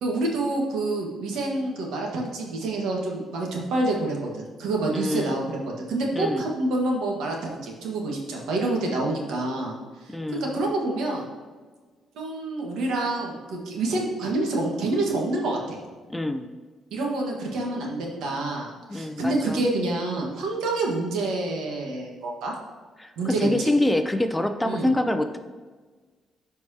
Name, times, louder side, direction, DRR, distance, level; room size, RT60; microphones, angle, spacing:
voice 1, 0.0-5.6 5.9-11.2 12.1-15.8 16.9-22.5 23.2-23.5 24.6-24.9, right 2 dB, 85° right, -1 dB, 1.6 m, -27 dB
voice 2, 4.9-5.4 6.1-6.4 10.1-10.5 16.1-16.5 18.9-19.6 23.0-25.4, left 1 dB, 10° left, 7 dB, 0.5 m, -26 dB
11.5 x 4.6 x 2.9 m, 1.4 s
cardioid pair, 90°, 0 cm